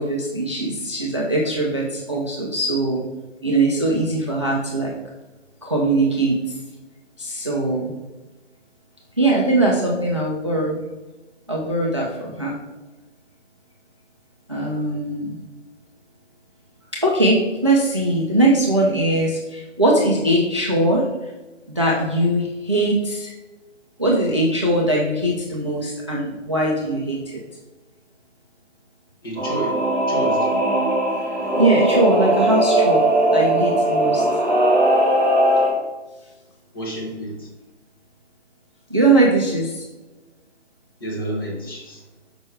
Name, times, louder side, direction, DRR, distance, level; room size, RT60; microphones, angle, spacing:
voice 1, 0.0-3.1 3.4-4.9 5.6-6.5 7.2-7.9 9.2-10.8 11.5-12.5 14.5-15.4 17.0-21.0 21.7-23.3 24.0-27.4 31.6-33.0 33.3-34.2 38.9-39.8, right 2 dB, 25° right, -3 dB, 0.5 m, -20 dB
voice 2, 29.2-29.8 30.1-30.5 36.7-37.3 41.0-42.0, right 1 dB, 20° left, -3 dB, 1.0 m, -29 dB
Singing / Musical instrument, 29.3-35.7, right 1 dB, 10° right, 1.5 m, -19 dB
6.1 x 5.4 x 3.2 m, 1.1 s
hypercardioid pair, 170°, 37 cm